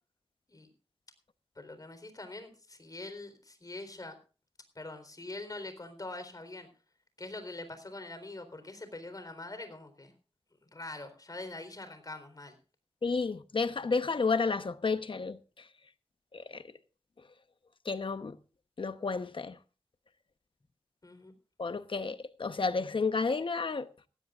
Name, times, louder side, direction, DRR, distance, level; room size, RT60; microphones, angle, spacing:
voice 1, 1.6-4.2 4.7-6.7 7.2-10.1 10.6-12.6 21.0-21.3, left 2 dB, 35° left, 4.0 m, -44 dB
voice 2, 13.0-15.7 16.3-16.7 17.8-18.4 18.8-19.6 21.6-23.9, left 4 dB, 55° left, 1.0 m, -31 dB
18.5 x 16.0 x 2.5 m
wide cardioid pair, 100°, 10 cm